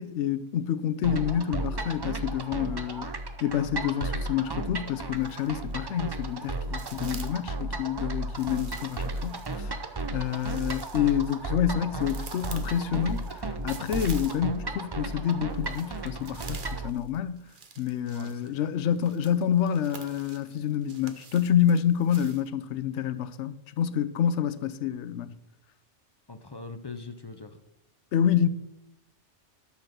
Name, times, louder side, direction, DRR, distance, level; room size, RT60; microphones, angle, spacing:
voice 1, 0.0-3.1 3.4-9.8 10.1-17.4 17.8-25.4 28.1-28.5, left 9 dB, 80° left, 1.0 m, -28 dB
sound 1, 1.0-16.9, right 2 dB, 30° right, 0.5 m, -34 dB
sound 2, 4.9-5.7 6.0-7.5 8.3-14.7 15.0-22.5, right 5 dB, 50° right, 1.0 m, -48 dB
voice 2, 18.0-19.0 26.3-27.6, left 3 dB, 30° left, 0.5 m, -42 dB
12.5 x 4.2 x 6.7 m
omnidirectional pair, 1.2 m